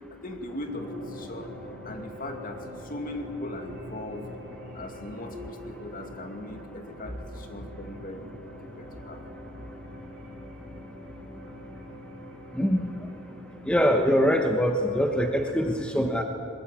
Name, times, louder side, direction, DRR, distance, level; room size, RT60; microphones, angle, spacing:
voice 1, 0.1-1.5 1.8-4.3 4.7-9.2, left 1 dB, 40° left, 4 dB, 2.5 m, -39 dB
sound 1, 0.6-14.2, equal, 45° right, 6.9 m, -44 dB
voice 2, 12.5-13.1 13.6-16.2, equal, 5° left, 3 dB, 1.2 m, -23 dB
21.5 x 21.0 x 8.8 m, 2.7 s
head